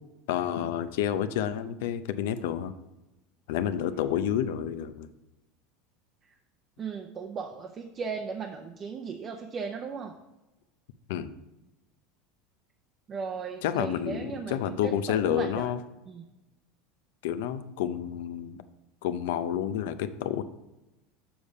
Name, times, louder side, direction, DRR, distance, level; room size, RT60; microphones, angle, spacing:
voice 1, 0.3-2.7 3.5-5.1 11.1-11.3 13.6-15.8 17.2-18.6 19.0-20.4, left 10 dB, 80° left, 12 dB, 0.5 m, -29 dB
voice 2, 6.8-10.1 13.1-15.7 16.1-16.2, right 5 dB, 30° right, 3 dB, 0.6 m, -37 dB
7.1 x 5.0 x 5.3 m, 1.0 s
supercardioid pair, 120°, 0 cm